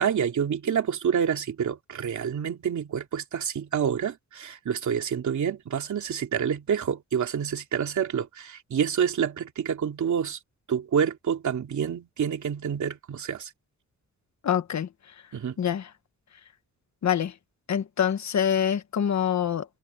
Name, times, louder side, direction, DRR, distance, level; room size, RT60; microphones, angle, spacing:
voice 1, 0.0-10.4 10.7-13.5 15.3-15.6, right 7 dB, 80° right, 2.9 m, -28 dB
voice 2, 14.4-14.9 15.6-15.9 17.0-17.3 17.7-19.6, left 9 dB, 70° left, 1.4 m, -25 dB
wide cardioid pair, 120°, 29 cm